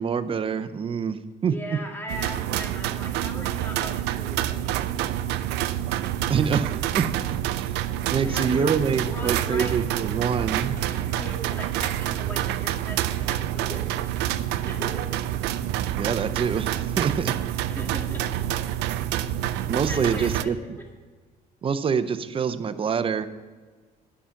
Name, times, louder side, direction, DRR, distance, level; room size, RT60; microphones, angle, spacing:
voice 1, 0.0-1.5 6.3-7.7 8.1-10.8 16.0-17.3 19.7-20.6 21.6-23.3, right 6 dB, 30° right, 12 dB, 0.6 m, -26 dB
voice 2, 1.5-4.8 8.1-9.7 10.4-13.9 14.4-15.1 17.7-18.4 19.9-20.5, equal, 10° left, 0 dB, 1.9 m, -39 dB
sound 1, 2.1-20.4, right 12 dB, 90° right, 0.4 m, -27 dB
10.0 x 5.8 x 6.9 m, 1.4 s
cardioid pair, 110°, 17 cm